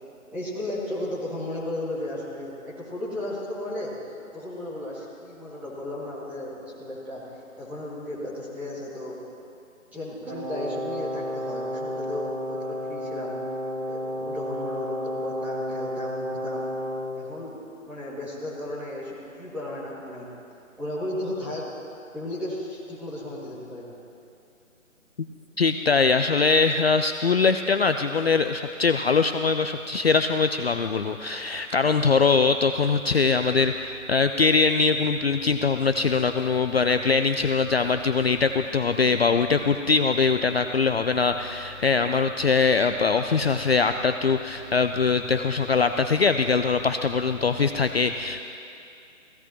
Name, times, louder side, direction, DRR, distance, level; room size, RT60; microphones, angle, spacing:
voice 1, 0.3-4.0 4.3-7.2 7.6-9.2 9.9-13.4 13.9-16.7 17.2-17.6 17.9-20.3 20.8-21.7 22.1-23.9, left 1 dB, 5° right, -9 dB, 2.2 m, -34 dB
Brass instrument, 10.2-17.1, equal, 65° right, 2.8 m, -32 dB
voice 2, 25.6-48.4, left 4 dB, 50° left, 8 dB, 0.5 m, -22 dB
28.0 x 16.5 x 3.0 m, 2.5 s
figure-of-eight pair, 160°, 41 cm